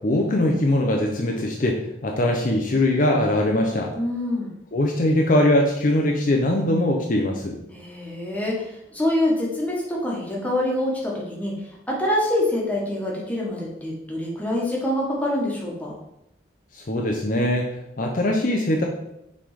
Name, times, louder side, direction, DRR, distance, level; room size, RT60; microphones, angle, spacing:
voice 1, 0.0-3.9 4.7-7.6 16.7-17.7 18.0-18.8, left 1 dB, 45° left, 1 dB, 0.6 m, -21 dB
voice 2, 3.9-4.5 7.7-15.9, left 1 dB, 10° left, -4 dB, 1.3 m, -25 dB
6.0 x 3.5 x 4.9 m, 0.84 s
head